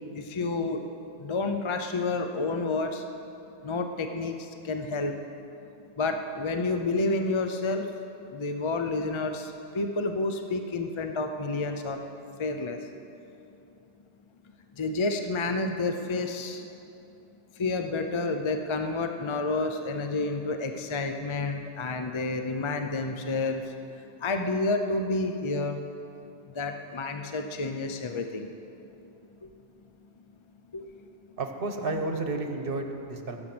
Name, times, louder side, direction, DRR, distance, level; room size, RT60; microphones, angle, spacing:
voice 1, 0.1-0.8 1.2-3.0 3.6-5.1 6.0-7.9 8.3-12.0 12.4-12.8 14.8-16.6 17.6-23.6 24.2-25.8 26.5-28.5 30.7-30.9, left 3 dB, 30° left, 5 dB, 0.7 m, -29 dB
voice 2, 31.4-33.4, right 2 dB, 60° right, 5 dB, 1.4 m, -31 dB
22.0 x 7.9 x 6.1 m, 2.8 s
omnidirectional pair, 1.1 m